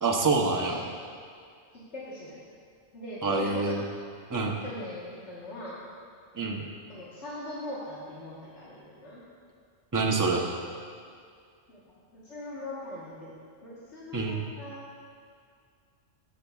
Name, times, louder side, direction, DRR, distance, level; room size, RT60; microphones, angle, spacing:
voice 1, 0.0-0.8 3.2-3.8 4.3-4.6 6.4-6.6 9.9-10.4 14.1-14.4, right 3 dB, 20° right, 0 dB, 0.6 m, -26 dB
voice 2, 1.9-2.4 2.9-3.8 4.6-5.8 6.9-9.2 11.7-11.8 12.1-13.3 13.6-14.8, left 1 dB, 80° left, -8 dB, 1.6 m, -40 dB
13.5 x 7.5 x 2.3 m, 2.2 s
omnidirectional pair, 1.1 m